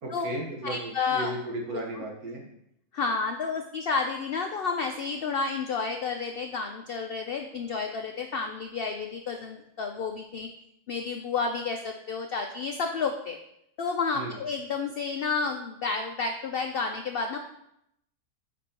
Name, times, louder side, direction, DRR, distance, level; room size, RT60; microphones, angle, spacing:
voice 1, 0.0-2.4 14.1-14.4, right 1 dB, 80° right, -1 dB, 1.8 m, -35 dB
voice 2, 0.6-1.3 2.9-10.5 10.9-13.4 13.8-17.4, left 4 dB, 80° left, 5 dB, 0.5 m, -30 dB
8.2 x 5.3 x 2.9 m, 0.78 s
omnidirectional pair, 1.6 m